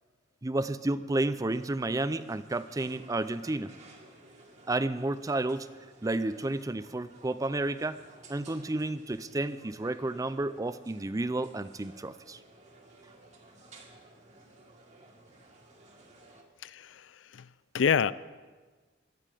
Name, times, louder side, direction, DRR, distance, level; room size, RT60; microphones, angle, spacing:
voice 1, 0.4-3.7 4.7-5.7 6.0-8.0 8.3-12.4, right 2 dB, 20° right, 14 dB, 0.4 m, -31 dB
sound 1, 1.5-16.4, right 2 dB, 40° right, 1.9 m, -55 dB
voice 2, 16.6-17.5 17.7-18.1, left 7 dB, 75° left, 17 dB, 0.4 m, -28 dB
18.0 x 12.5 x 5.0 m, 1.4 s
head